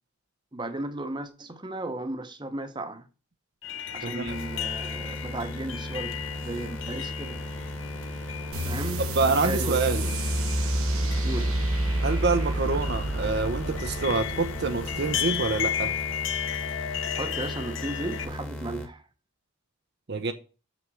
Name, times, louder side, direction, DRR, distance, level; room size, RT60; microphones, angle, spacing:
voice 1, 0.5-3.0 3.9-7.4 8.7-10.1 11.2-11.5 17.1-19.0, right 2 dB, 20° right, 0.9 m, -35 dB
sound 1, 3.6-18.2, left 9 dB, 60° left, 0.8 m, -35 dB
voice 2, 4.0-4.3 9.2-10.1 12.0-15.9 20.1-20.3, right 3 dB, 50° right, 0.7 m, -26 dB
sound 2, 4.3-18.9, left 1 dB, 10° left, 1.3 m, -37 dB
sound 3, 8.5-15.6, right 1 dB, 80° right, 1.1 m, -29 dB
7.0 x 6.1 x 6.2 m
head